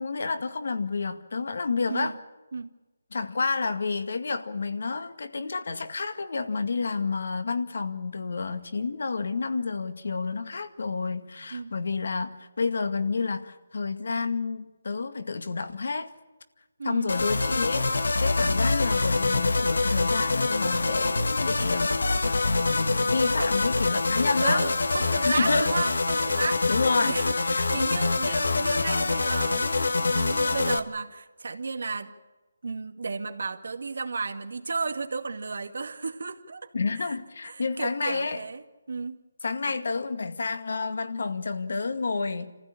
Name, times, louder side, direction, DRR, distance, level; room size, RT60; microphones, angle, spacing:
voice 1, 0.0-2.1 3.1-16.1 16.8-17.9 18.2-24.7 25.0-25.8 26.7-27.2 27.5-28.4 36.7-38.4 39.4-42.5, left 4 dB, 65° left, 9 dB, 2.1 m, -30 dB
voice 2, 16.8-17.2 23.4-23.5 24.4-26.6 27.1-32.1 32.6-36.7 37.0-37.1 37.4-39.2, right 4 dB, 65° right, 6 dB, 2.0 m, -33 dB
sound 1, 17.1-30.8, left 3 dB, 85° left, 1.7 m, -25 dB
27.0 x 15.5 x 8.7 m, 1.2 s
hypercardioid pair, 165°, 0 cm